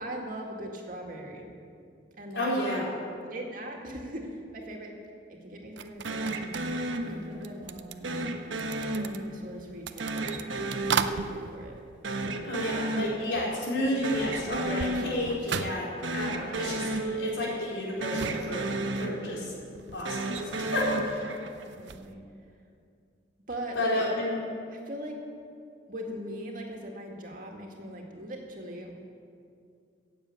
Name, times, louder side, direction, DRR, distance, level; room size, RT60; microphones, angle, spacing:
voice 1, 0.0-1.5 2.2-2.5 3.3-4.9 5.3-6.4 7.0-8.3 8.9-11.7 12.2-12.8 21.6-22.2 23.5-24.0 24.7-25.2 25.9-28.9, right 1 dB, 45° right, 1 dB, 2.1 m, -40 dB
voice 2, 2.3-2.9 12.4-18.6 19.0-19.5 19.9-21.3 23.7-24.3, left 1 dB, 80° left, -5 dB, 4.4 m, -31 dB
sound 1, 5.8-13.1 13.3-22.1, right 6 dB, 70° right, 0.5 m, -39 dB
sound 2, 6.0-7.6 8.0-9.6 10.0-11.8 12.0-13.6 13.8-15.6 16.0-17.8 18.0-19.6 20.0-21.7, right 2 dB, 90° right, 1.1 m, -33 dB
16.0 x 7.4 x 8.5 m, 2.4 s
head